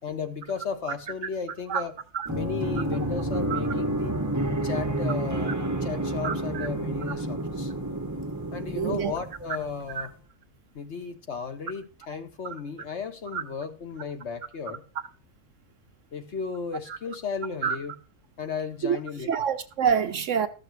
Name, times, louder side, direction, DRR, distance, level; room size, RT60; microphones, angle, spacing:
voice 1, 0.0-2.0 2.3-4.1 4.6-7.7 8.5-10.1 10.7-14.8 16.1-18.0 18.4-19.3, left 5 dB, 50° left, 1.2 m, -35 dB
sound 1, 2.2-9.8, right 1 dB, 15° right, 0.8 m, -29 dB
voice 2, 6.2-6.7 8.8-9.1 10.0-10.1 13.3-13.4 17.6-17.8 18.8-19.0 19.3-20.5, right 7 dB, 60° right, 0.9 m, -26 dB
13.0 x 6.6 x 4.6 m
omnidirectional pair, 1.6 m